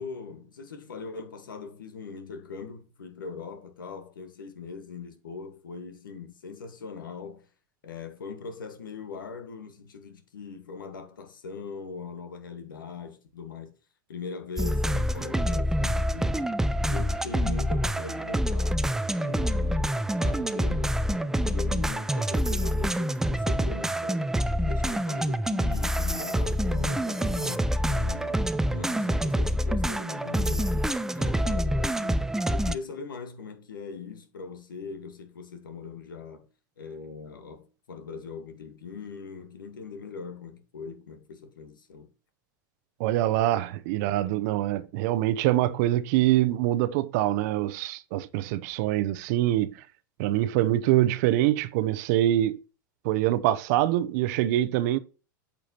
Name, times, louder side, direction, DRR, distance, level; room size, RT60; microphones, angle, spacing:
voice 1, 0.0-7.4 7.8-13.7 14.1-16.5 16.9-18.9 19.1-30.9 31.2-36.5 36.8-42.1, left 5 dB, 85° left, 1.5 m, -41 dB
sound 1, 14.6-32.8, equal, 5° right, 0.4 m, -26 dB
voice 2, 43.0-49.7 50.2-52.6 53.0-55.0, right 14 dB, 60° right, 0.7 m, -24 dB
8.7 x 5.9 x 2.9 m
hypercardioid pair, 95°, 11 cm